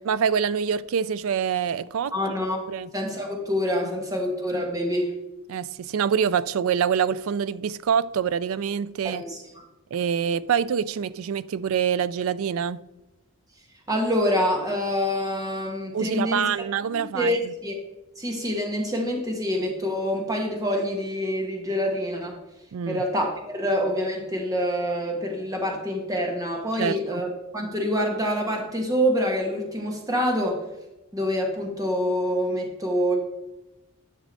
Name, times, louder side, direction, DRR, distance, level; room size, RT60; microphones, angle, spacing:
voice 1, 0.0-2.3 2.7-2.9 5.5-9.2 9.9-12.8 15.9-17.5 22.7-23.0 26.8-27.2, right 7 dB, 75° right, 0.3 m, -25 dB
voice 2, 2.1-2.6 2.9-5.1 9.0-9.4 13.9-16.5 16.9-17.7 18.2-22.4 22.9-30.6 31.1-33.2, equal, 15° right, 1.3 m, -26 dB
10.5 x 6.2 x 4.1 m
head